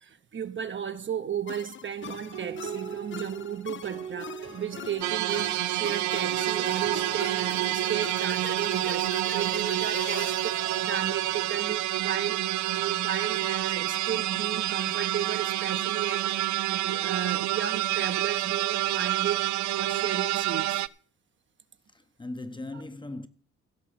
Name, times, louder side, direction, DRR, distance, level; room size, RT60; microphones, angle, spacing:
voice 1, 0.0-19.4 19.8-20.8, right 8 dB, 40° right, 0.9 m, -34 dB
sound 1, 1.5-11.9, left 10 dB, 40° left, 0.4 m, -43 dB
sound 2, 2.0-11.6, right 7 dB, 90° right, 4.1 m, -42 dB
sound 3, 5.0-20.9, right 14 dB, 70° right, 0.5 m, -28 dB
voice 2, 21.9-23.3, left 2 dB, 15° left, 0.8 m, -38 dB
16.0 x 6.1 x 5.9 m
cardioid pair, 90°, 30 cm